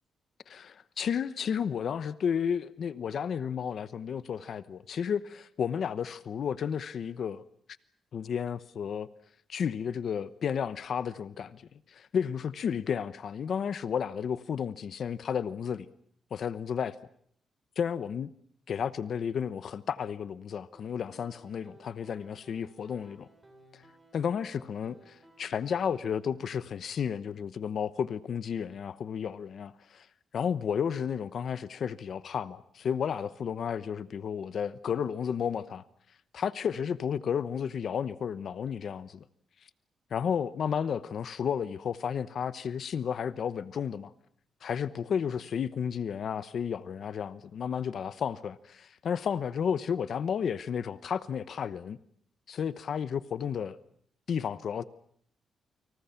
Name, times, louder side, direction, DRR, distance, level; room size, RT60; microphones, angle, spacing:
voice 1, 0.5-7.4 8.1-9.1 9.5-11.6 11.9-15.9 16.3-16.9 17.8-18.3 18.7-23.3 23.7-23.8 24.1-30.1 30.3-35.8 36.3-39.2 40.1-44.1 44.6-52.0 52.5-53.8 54.3-54.8, left 7 dB, 55° left, 1.0 m, -32 dB
sound 1, 20.7-26.1, right 1 dB, 15° right, 7.1 m, -58 dB
29.5 x 26.5 x 5.8 m
cardioid pair, 150°, 0 cm